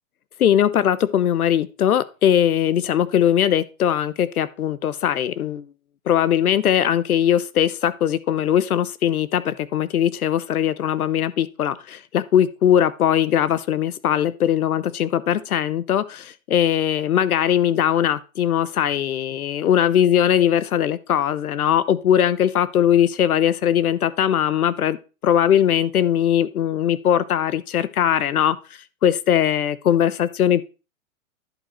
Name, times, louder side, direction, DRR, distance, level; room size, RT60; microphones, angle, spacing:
voice 1, 0.4-5.7 6.1-25.0 25.2-28.6 29.0-30.6, left 10 dB, 85° left, 0.9 m, -20 dB
11.0 x 4.8 x 4.3 m
hypercardioid pair, 140°, 43 cm